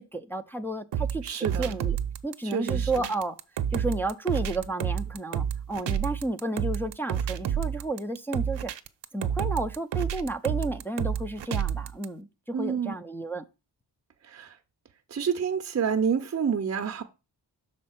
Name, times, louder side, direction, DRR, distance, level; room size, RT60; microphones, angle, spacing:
voice 1, 0.0-1.2 1.6-2.0 2.2-3.4 3.7-8.7 9.1-13.4, right 2 dB, 5° left, 0.4 m, -32 dB
sound 1, 0.9-12.1, right 8 dB, 75° right, 0.7 m, -30 dB
voice 2, 1.2-1.8 2.4-3.1 12.5-12.9 14.2-14.6 15.1-17.0, right 7 dB, 35° right, 0.6 m, -29 dB
6.3 x 4.3 x 5.7 m
wide cardioid pair, 115°, 43 cm